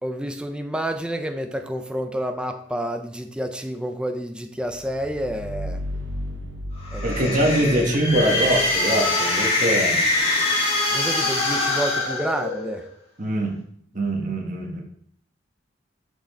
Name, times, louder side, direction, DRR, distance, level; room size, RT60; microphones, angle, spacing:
voice 1, 0.0-5.8 6.9-7.9 10.9-12.9, equal, 5° right, 6 dB, 0.5 m, -29 dB
sound 1, 4.7-9.4, equal, 75° right, 0.7 m, -34 dB
sound 2, 6.8-12.9, left 2 dB, 35° left, 2.2 m, -23 dB
voice 2, 7.0-10.0 13.2-13.6 13.9-14.8, right 1 dB, 40° right, 1 dB, 1.5 m, -23 dB
6.5 x 5.8 x 4.3 m, 0.66 s
head